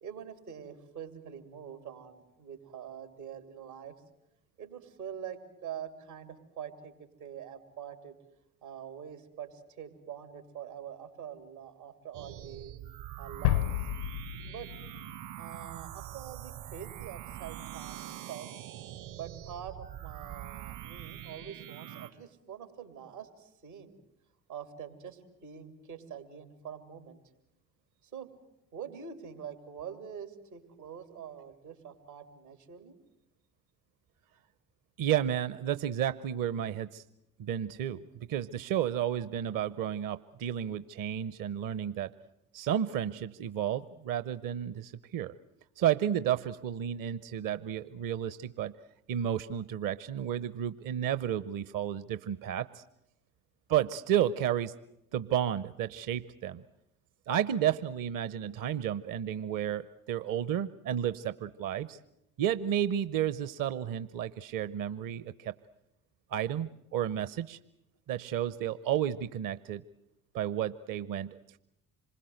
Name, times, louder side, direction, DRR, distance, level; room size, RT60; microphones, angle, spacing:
voice 1, 0.0-4.0 4.6-8.1 8.6-12.7 13.2-13.7 14.4-14.7 15.4-18.5 19.1-24.0 24.5-27.2 28.1-28.3 28.7-33.0, right 8 dB, 85° right, 9 dB, 2.9 m, -45 dB
sound 1, 12.1-22.1, right 13 dB, 65° right, 2.2 m, -44 dB
sound 2, 13.4-15.9, left 14 dB, 80° left, 0.8 m, -32 dB
voice 2, 35.0-37.0 37.4-42.1 42.5-45.3 45.8-48.7 49.1-52.8 53.7-54.7 55.1-56.6 57.3-62.0 62.4-65.5 66.3-67.6 68.1-69.8 70.3-71.6, right 10 dB, 50° right, 15 dB, 0.8 m, -32 dB
27.0 x 21.0 x 8.0 m, 0.85 s
figure-of-eight pair, 55°, 43 cm